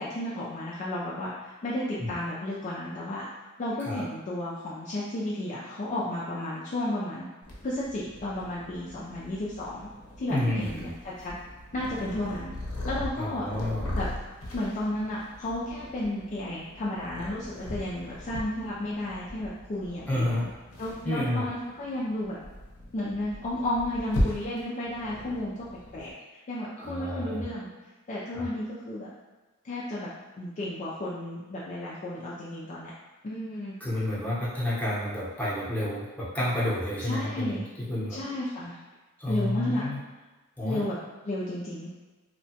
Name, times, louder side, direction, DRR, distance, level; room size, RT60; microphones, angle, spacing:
voice 1, 0.0-3.3 3.6-7.3 7.6-9.9 10.2-11.4 11.7-12.5 12.8-13.5 14.0-14.1 14.5-20.5 20.8-22.4 22.9-25.7 25.9-26.1 26.5-27.7 28.1-29.1 29.6-30.1 30.4-32.9 33.2-33.7 37.1-37.7 38.1-38.8 39.3-39.9 40.6-41.0 41.2-41.9, left 1 dB, 35° left, -7 dB, 0.4 m, -33 dB
Purr, 7.4-26.1, left 1 dB, 75° left, 0.7 m, -38 dB
voice 2, 10.3-10.9 13.2-14.0 20.1-20.4 21.0-21.5 26.8-27.4 28.3-28.5 33.8-37.6 37.9-38.2 39.2-40.0 40.6-40.9, left 1 dB, 5° left, -9 dB, 0.8 m, -30 dB
2.8 x 2.2 x 2.7 m, 1.2 s
head